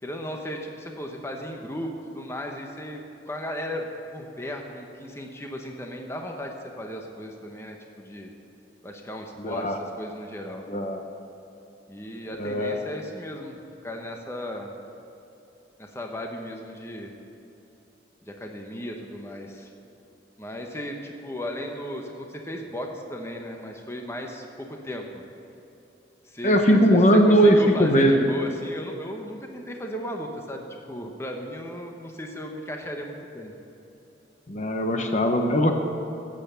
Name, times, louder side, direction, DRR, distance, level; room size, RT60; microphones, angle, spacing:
voice 1, 0.0-3.9 4.1-8.3 8.8-10.6 11.9-14.7 15.8-17.1 18.2-19.7 20.4-25.2 26.2-33.5, equal, 15° left, 2 dB, 1.0 m, -36 dB
voice 2, 9.4-9.8 10.7-11.0 12.4-12.7 26.4-28.2 34.5-35.7, equal, 40° left, 4 dB, 1.0 m, -19 dB
13.5 x 8.9 x 6.9 m, 2.9 s
head